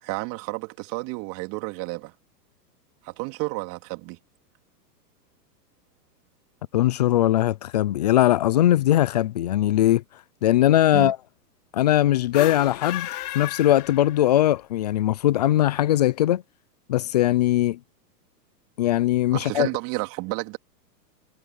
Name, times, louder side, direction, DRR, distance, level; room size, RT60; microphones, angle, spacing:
voice 1, 0.0-2.1 3.0-4.2 10.9-11.1 19.3-20.6, right 25 dB, 40° right, 3.5 m, -31 dB
voice 2, 6.7-10.0 10.4-11.2 11.7-13.1 13.3-16.4 16.9-17.8 18.8-19.7, left 13 dB, 30° left, 0.3 m, -20 dB
sound 1, 12.2-14.6, left 15 dB, 65° left, 2.2 m, -34 dB
hypercardioid pair, 135°, 50 cm